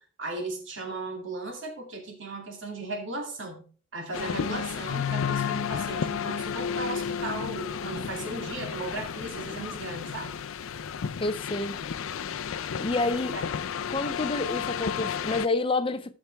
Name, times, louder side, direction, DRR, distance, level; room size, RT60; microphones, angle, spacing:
voice 1, 0.2-3.6 3.9-10.3 13.3-13.4, right 2 dB, 65° right, 2.5 m, -36 dB
sound 1, 4.1-15.5, left 7 dB, 80° left, 0.5 m, -32 dB
voice 2, 11.2-11.8 12.8-13.3 13.9-16.1, left 2 dB, 25° left, 0.5 m, -28 dB
14.0 x 6.0 x 3.4 m
head